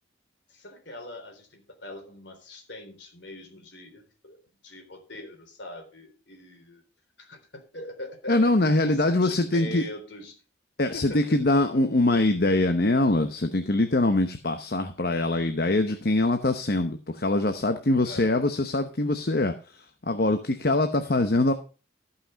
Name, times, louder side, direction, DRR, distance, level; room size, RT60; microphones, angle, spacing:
voice 1, 0.5-4.4 4.6-6.8 7.2-8.5 8.8-10.4 10.9-11.4 18.0-18.4, left 2 dB, 70° left, 4 dB, 3.7 m, -42 dB
voice 2, 8.3-9.8 10.8-21.5, left 2 dB, 55° left, 7 dB, 0.9 m, -23 dB
14.5 x 5.8 x 5.2 m, 0.35 s
head